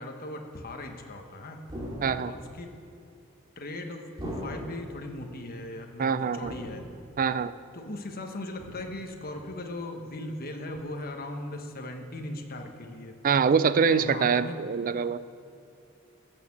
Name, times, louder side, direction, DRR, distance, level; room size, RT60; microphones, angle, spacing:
voice 1, 0.0-1.6 2.2-2.8 3.6-6.8 7.7-13.2 13.9-14.6, left 1 dB, 45° left, 4 dB, 1.2 m, -38 dB
sound 1, 1.7-2.5 4.2-5.0 6.4-7.2 8.6-9.2 10.7-10.8, equal, 20° right, 2.2 m, -39 dB
voice 2, 2.0-2.3 6.0-6.5 7.2-7.5 13.2-15.2, right 6 dB, 40° right, 15 dB, 0.4 m, -24 dB
15.5 x 6.7 x 7.2 m, 2.6 s
head